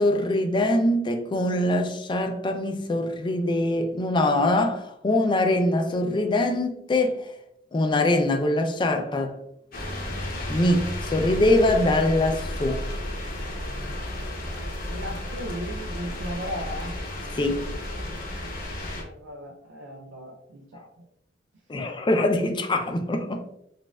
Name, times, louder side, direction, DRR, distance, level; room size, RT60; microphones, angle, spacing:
voice 1, 0.0-7.2 7.7-9.3 10.5-12.8 17.4-17.7 21.7-23.4, left 1 dB, 25° left, 0.4 m, -23 dB
sound 1, 9.7-19.0, left 1 dB, 50° left, 0.8 m, -33 dB
voice 2, 14.8-17.0 18.9-21.1, equal, 90° right, 0.4 m, -36 dB
4.1 x 2.5 x 2.2 m
head